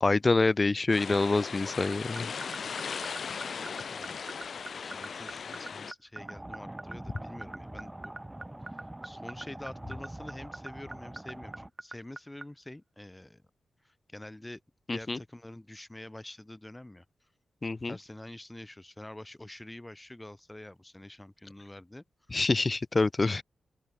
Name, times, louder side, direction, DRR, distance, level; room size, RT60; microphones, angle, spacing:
voice 1, 0.0-2.3 14.9-15.2 17.6-18.0 22.3-23.4, left 3 dB, 30° left, 0.5 m, -26 dB
sound 1, 0.9-5.9, left 6 dB, 65° left, 1.6 m, -38 dB
sound 2, 1.9-12.4, right 3 dB, 30° right, 0.6 m, -40 dB
voice 2, 3.5-4.2 4.8-8.1 8.6-13.4 13.8-14.6 14.9-17.1 17.9-22.0, left 1 dB, 15° left, 2.1 m, -46 dB
sound 3, 6.2-11.7, right 1 dB, 15° right, 1.9 m, -44 dB
open air
cardioid pair, 75°, 0 cm